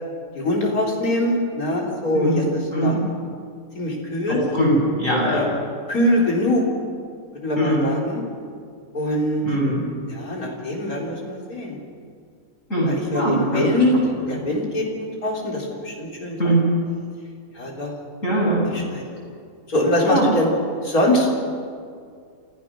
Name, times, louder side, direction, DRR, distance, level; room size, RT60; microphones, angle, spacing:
voice 1, 0.3-2.9 3.7-4.4 5.3-5.4 5.9-6.6 7.4-8.2 8.9-9.4 10.1-11.8 12.9-14.0 14.3-16.5 17.5-17.9 18.7-19.0 19.7-20.5 20.8-21.3, left 1 dB, 85° left, -2 dB, 4.4 m, -23 dB
voice 2, 2.7-3.1 4.3-5.5 7.6-7.9 9.4-9.8 12.7-13.8 16.4-16.7 18.2-18.7 20.0-20.3, right 1 dB, 60° left, -4 dB, 7.5 m, -21 dB
27.5 x 15.5 x 6.3 m, 2.2 s
omnidirectional pair, 1.5 m